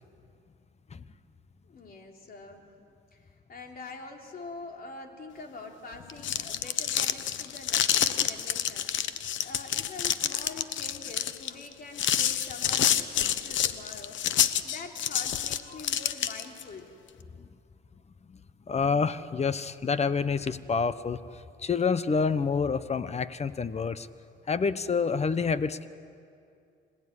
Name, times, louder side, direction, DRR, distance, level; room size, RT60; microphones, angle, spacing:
voice 1, 1.6-2.7 3.1-8.9 9.4-14.2 14.6-16.9, left 3 dB, 50° left, 2 dB, 3.3 m, -45 dB
sound 1, 6.0-16.6, left 10 dB, 70° left, 1.0 m, -28 dB
voice 2, 18.7-24.1 24.5-25.9, left 5 dB, 35° left, 14 dB, 1.0 m, -28 dB
26.0 x 18.5 x 9.7 m, 2.4 s
cardioid pair, 90°, 20 cm